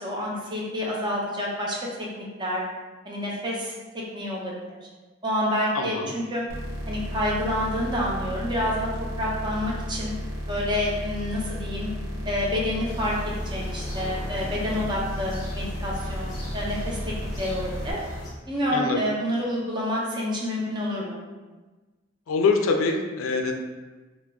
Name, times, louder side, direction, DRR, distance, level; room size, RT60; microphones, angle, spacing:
voice 1, 0.0-1.8 2.2-2.6 3.0-3.7 4.1-4.8 5.2-6.4 6.9-8.9 9.2-10.1 10.5-11.9 12.2-17.0 17.4-18.0 18.5-21.2, left 1 dB, 25° right, -4 dB, 0.5 m, -28 dB
voice 2, 5.7-6.1 18.7-19.0 22.3-23.5, left 4 dB, 85° left, 4 dB, 0.3 m, -24 dB
sound 1, 6.5-17.9, equal, 80° right, 0.7 m, -33 dB
sound 2, 12.9-18.3, equal, 20° left, 0.7 m, -38 dB
2.3 x 2.0 x 3.5 m, 1.2 s
head